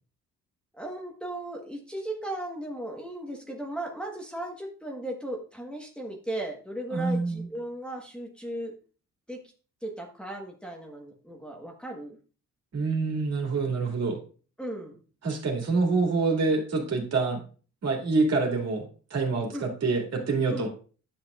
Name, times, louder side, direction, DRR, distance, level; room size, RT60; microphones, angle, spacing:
voice 1, 0.7-8.7 9.3-9.4 9.8-12.2 14.6-15.0 19.5-19.7 20.5-20.7, right 1 dB, 5° left, 0 dB, 1.4 m, -36 dB
voice 2, 6.9-7.5 12.7-14.2 15.2-17.4 17.8-20.7, right 3 dB, 55° right, 1 dB, 2.6 m, -26 dB
10.0 x 6.1 x 2.5 m, 0.38 s
cardioid pair, 90°, 30 cm